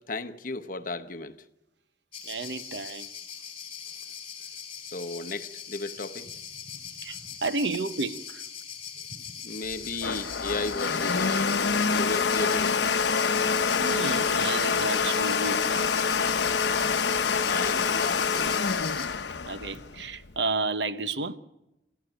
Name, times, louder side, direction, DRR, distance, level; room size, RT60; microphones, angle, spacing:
voice 1, 0.0-1.4 4.8-6.3 9.4-11.6 11.9-12.9 17.4-18.7, left 3 dB, 50° left, 1.0 m, -35 dB
sound 1, 2.1-19.1, left 8 dB, 30° left, 4.2 m, -40 dB
voice 2, 2.2-3.1 7.0-8.4 13.8-16.0 19.5-21.4, right 3 dB, 75° right, 1.0 m, -32 dB
Domestic sounds home sounds, 9.7-20.4, left 5 dB, 75° left, 0.9 m, -26 dB
28.5 x 14.0 x 9.1 m
head